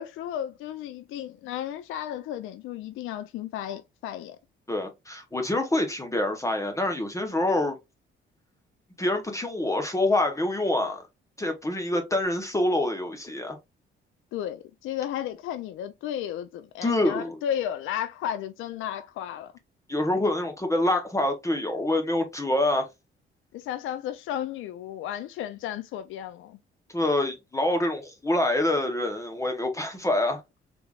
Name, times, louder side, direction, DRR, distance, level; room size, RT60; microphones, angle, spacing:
voice 1, 0.0-4.4 14.3-19.5 23.5-26.6, left 10 dB, 85° left, 0.4 m, -33 dB
voice 2, 4.7-7.7 9.0-11.1 11.4-13.6 16.8-17.4 19.9-22.9 26.9-30.4, left 1 dB, 15° left, 0.8 m, -26 dB
3.4 x 3.3 x 2.3 m
cardioid pair, 90°, 20 cm